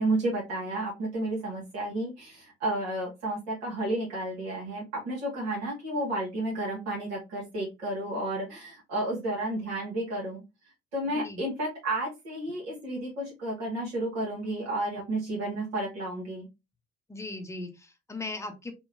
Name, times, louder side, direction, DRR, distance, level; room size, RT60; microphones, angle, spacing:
voice 1, 0.0-10.4 10.9-16.5, right 1 dB, 65° right, -4 dB, 1.2 m, -32 dB
voice 2, 17.1-18.7, left 2 dB, 10° left, 5 dB, 0.7 m, -38 dB
3.5 x 2.2 x 2.6 m, 0.24 s
figure-of-eight pair, 55°, 34 cm